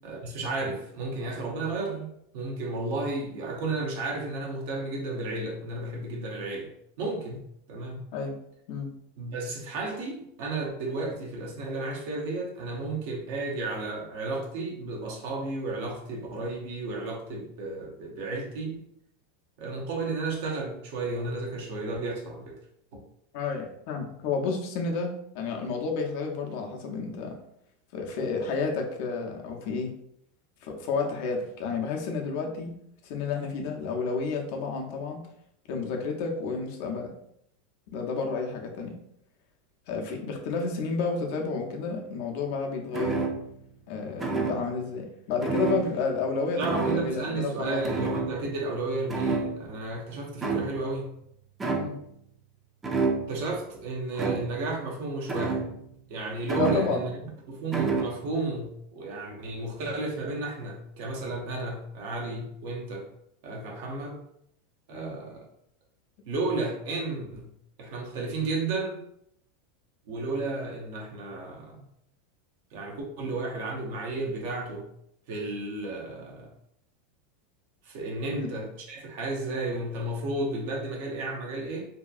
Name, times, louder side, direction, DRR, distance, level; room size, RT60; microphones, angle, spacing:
voice 1, 0.0-6.7 7.0-7.4 7.7-8.0 9.2-18.8 19.6-22.6 22.9-23.0 46.6-51.1 53.3-55.7 56.1-57.1 57.5-63.1 63.4-64.2 64.9-65.5 66.3-67.5 67.8-69.0 70.1-71.9 72.7-74.9 75.3-76.5 77.8-81.9, right 2 dB, 65° right, 0 dB, 0.7 m, -33 dB
voice 2, 23.3-25.1 25.3-27.4 27.9-29.9 30.6-32.7 33.0-35.2 35.7-37.1 37.9-38.9 39.9-43.2 43.9-47.8 51.7-52.0 56.5-57.1 64.9-65.1 78.3-78.5, left 4 dB, 60° left, 1 dB, 0.5 m, -31 dB
sound 1, 42.9-43.6 44.2-44.8 45.4-46.3 46.6-47.3 47.8-48.8 49.1-49.9 50.4-51.0 51.6-52.1 52.8-53.5 54.1-54.7 55.3-56.0 56.5-57.2 57.7-58.2, right 4 dB, 20° right, 0.5 m, -30 dB
2.7 x 2.3 x 2.4 m, 0.74 s
hypercardioid pair, 100°, 0 cm